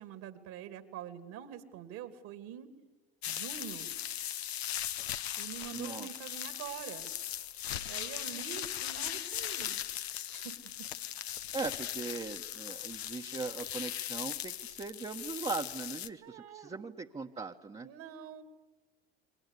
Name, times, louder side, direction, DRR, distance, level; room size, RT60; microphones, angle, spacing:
voice 1, 0.0-2.7 3.2-3.9 5.4-7.1 7.8-9.8 10.3-10.9 16.2-16.8 17.8-18.4, right 9 dB, 60° right, 11 dB, 2.7 m, -45 dB
sound 1, 3.2-16.1, left 11 dB, 85° left, 0.9 m, -39 dB
voice 2, 5.7-6.1 11.5-17.9, right 4 dB, 20° right, 0 dB, 1.2 m, -39 dB
29.5 x 23.0 x 8.3 m, 1.2 s
hypercardioid pair, 70°, 31 cm